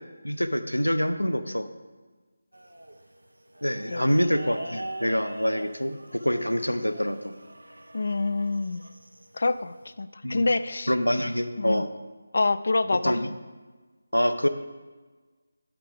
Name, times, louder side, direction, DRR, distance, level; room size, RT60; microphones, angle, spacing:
voice 1, 0.2-1.7 3.6-7.3 10.2-10.5 10.9-11.9 13.0-13.3 14.1-14.5, equal, 80° left, 10 dB, 0.8 m, -26 dB
sound 1, 2.5-9.9, right 1 dB, 70° right, 0.8 m, -43 dB
voice 2, 7.9-8.8 9.3-10.9 11.6-11.8 12.3-13.2, left 3 dB, 50° left, 14 dB, 0.4 m, -26 dB
9.6 x 6.0 x 5.0 m, 1.3 s
figure-of-eight pair, 160°, 0 cm